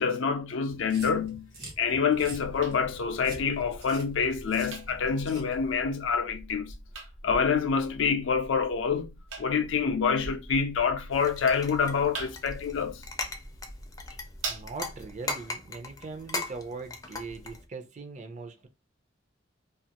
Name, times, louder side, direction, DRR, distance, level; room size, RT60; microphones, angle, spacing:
voice 1, 0.0-1.5 1.8-6.7 7.2-9.1 9.4-13.0, left 6 dB, 80° left, 0.4 m, -27 dB
sound 1, 0.7-5.8, right 2 dB, 60° right, 1.2 m, -47 dB
sound 2, 2.2-15.2, right 2 dB, 85° right, 0.7 m, -44 dB
sound 3, 11.1-17.7, left 3 dB, 20° left, 0.4 m, -39 dB
voice 2, 14.5-18.7, right 4 dB, 40° right, 0.5 m, -40 dB
2.4 x 2.4 x 2.8 m
head